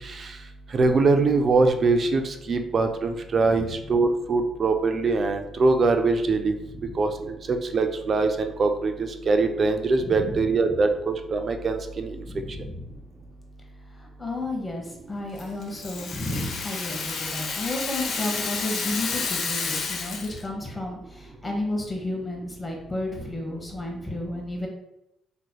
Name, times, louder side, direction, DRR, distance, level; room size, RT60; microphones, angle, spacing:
voice 1, 0.7-6.5 7.0-8.9 9.3-12.2, right 3 dB, 45° right, 6 dB, 0.4 m, -23 dB
voice 2, 6.6-7.0 10.0-10.8 12.2-12.9 14.0-24.7, left 2 dB, 15° left, 0 dB, 1.0 m, -32 dB
Rattle (instrument), 15.4-20.5, left 4 dB, 65° left, 0.7 m, -30 dB
4.1 x 3.1 x 2.2 m, 0.86 s
cardioid pair, 90°, 0 cm